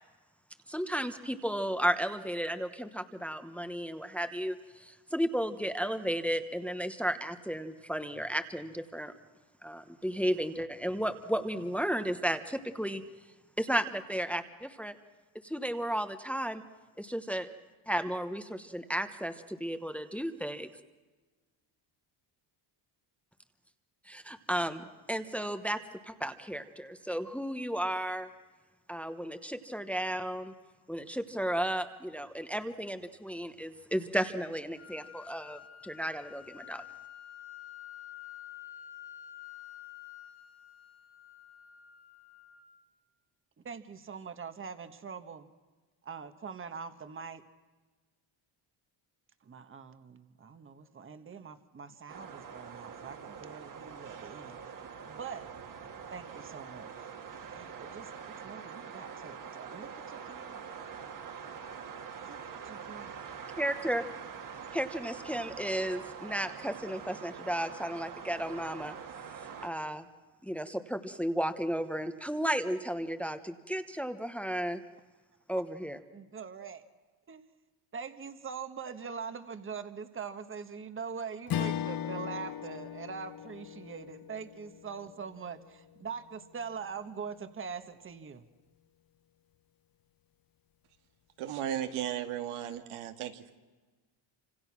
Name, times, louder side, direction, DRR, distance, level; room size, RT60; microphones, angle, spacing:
voice 1, 0.7-9.1 9.6-13.0 13.6-14.9 15.4-16.6 17.0-17.5 17.9-20.7 24.1-25.8 26.0-28.3 28.9-30.5 30.9-36.8 63.6-64.0 64.7-68.9 69.6-70.1 70.4-74.8 75.5-76.0, equal, 5° left, 8 dB, 1.1 m, -34 dB
sound 1, 34.8-42.8, left 12 dB, 85° left, 6.1 m, -49 dB
voice 2, 43.6-45.5 46.0-47.4 49.4-54.6 55.1-55.5 56.1-56.9 57.5-60.8 62.2-63.2 76.1-76.8 77.3-77.5 77.9-88.4, right 6 dB, 25° right, 9 dB, 1.4 m, -43 dB
sound 2, 52.1-69.7, right 6 dB, 40° right, 2.0 m, -44 dB
Strum, 81.5-86.1, left 10 dB, 45° left, 0.7 m, -38 dB
voice 3, 91.4-93.5, right 11 dB, 85° right, 6 dB, 2.2 m, -35 dB
28.0 x 26.5 x 6.1 m, 1.3 s
cardioid pair, 145°, 49 cm